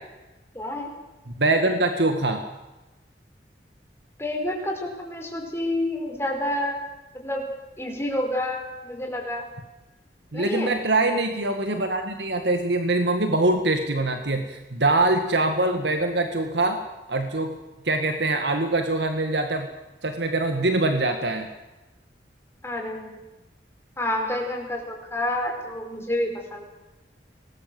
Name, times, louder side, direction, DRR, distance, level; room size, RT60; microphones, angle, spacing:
voice 1, 0.5-0.9 4.2-6.8 7.1-7.4 7.8-9.4 10.3-10.7 22.6-23.2 24.0-26.6, left 1 dB, 15° left, 2 dB, 4.8 m, -29 dB
voice 2, 1.3-2.4 10.3-16.8 17.1-17.5 17.9-19.7 20.0-21.5, right 2 dB, 80° right, 6 dB, 1.8 m, -23 dB
24.0 x 20.0 x 7.8 m, 1.1 s
head